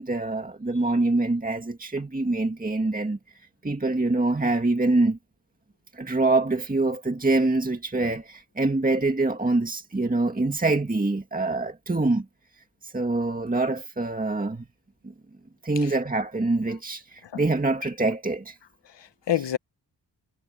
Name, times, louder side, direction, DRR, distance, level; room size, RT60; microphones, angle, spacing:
voice 1, 0.0-3.2 3.6-5.2 5.9-12.3 12.8-14.6 15.6-18.6, right 2 dB, 20° right, 2.0 m, -25 dB
voice 2, 18.9-19.6, left 11 dB, 85° left, 1.2 m, -29 dB
wide cardioid pair, 105°, 41 cm